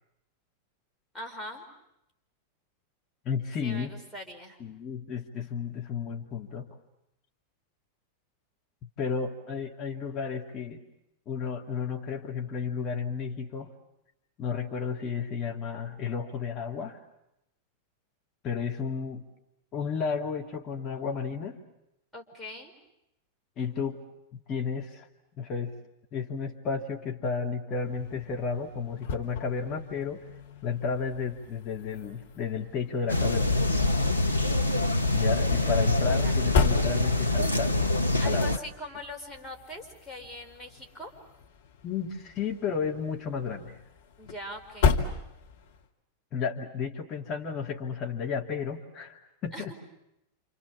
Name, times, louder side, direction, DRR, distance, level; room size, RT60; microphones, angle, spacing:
voice 1, 1.1-1.7 3.6-4.6 22.1-22.7 35.5-36.4 38.2-41.1 44.2-45.0 49.5-49.7, left 1 dB, 5° left, 0 dB, 4.9 m, -42 dB
voice 2, 3.2-4.0 4.6-6.7 9.0-10.8 11.3-13.7 14.4-17.0 18.4-19.2 19.7-21.6 23.6-24.0 24.3-25.1 25.3-25.7 26.1-30.3 30.6-33.7 35.1-37.7 38.2-38.5 41.8-43.8 46.3-49.7, left 6 dB, 30° left, 1 dB, 2.3 m, -32 dB
sound 1, 27.8-45.9, left 5 dB, 55° left, 2.1 m, -35 dB
sound 2, 33.1-38.6, left 2 dB, 90° left, 0.9 m, -25 dB
28.5 x 27.5 x 7.3 m, 0.85 s
figure-of-eight pair, 90°, 0 cm